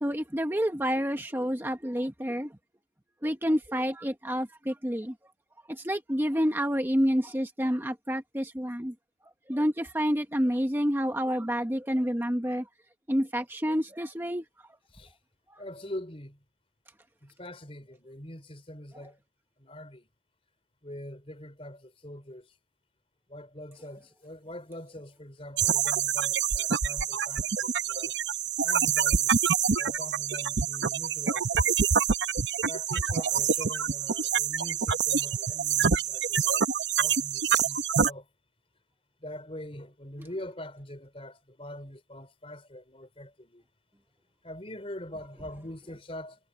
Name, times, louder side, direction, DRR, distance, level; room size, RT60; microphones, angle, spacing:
voice 1, 0.0-2.5 3.2-5.1 5.7-8.9 9.5-12.7 13.1-14.4 15.5-15.6, equal, 10° right, 1.1 m, -28 dB
voice 2, 15.6-16.4 17.2-19.2 19.6-20.1 20.8-22.5 23.3-28.1 28.6-29.4 29.8-31.8 32.6-36.7 37.0-38.3 39.2-43.6 44.4-46.5, left 1 dB, 30° left, 4.6 m, -43 dB
sound 1, 25.6-38.1, right 7 dB, 75° right, 0.9 m, -26 dB
head